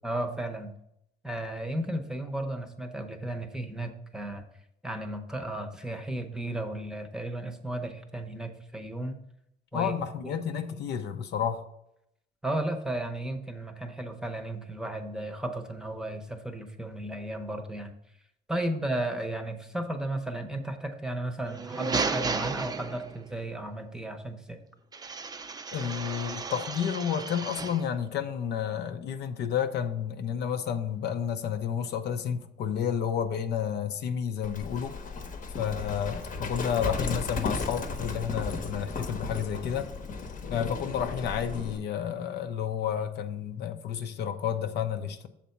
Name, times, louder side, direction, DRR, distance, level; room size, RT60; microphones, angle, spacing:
voice 1, 0.0-0.7 1.2-4.4 4.8-9.2 9.7-9.9 10.2-10.3 12.4-17.9 18.5-24.6, right 1 dB, 5° right, 0.8 m, -34 dB
voice 2, 9.7-11.6 25.7-35.0 35.6-39.9 40.5-45.3, left 8 dB, 75° left, 0.7 m, -31 dB
sound 1, 21.4-23.4 24.9-27.9, right 4 dB, 20° right, 0.4 m, -34 dB
Livestock farm animals working animals, 34.4-41.8, left 4 dB, 50° left, 1.0 m, -35 dB
7.3 x 4.1 x 5.7 m
cardioid pair, 125°, 18 cm